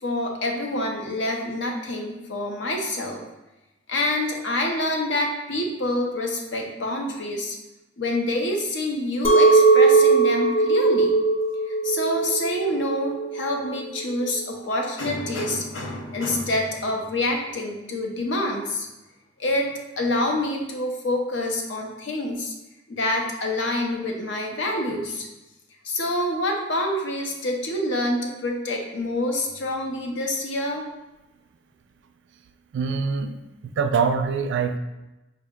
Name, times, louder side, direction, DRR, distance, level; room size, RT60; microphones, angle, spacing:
voice 1, 0.0-3.2 3.9-7.6 8.0-11.1 11.7-18.9 19.4-19.7 20.0-22.5 22.9-25.3 25.8-30.8, left 1 dB, 70° left, 2 dB, 0.6 m, -27 dB
Chink clink, 9.2-14.4, right 3 dB, 30° left, 0.4 m, -19 dB
voice 2, 32.7-33.4 33.6-34.8, right 5 dB, 65° right, 9 dB, 0.3 m, -24 dB
4.7 x 2.0 x 3.5 m, 1.0 s
head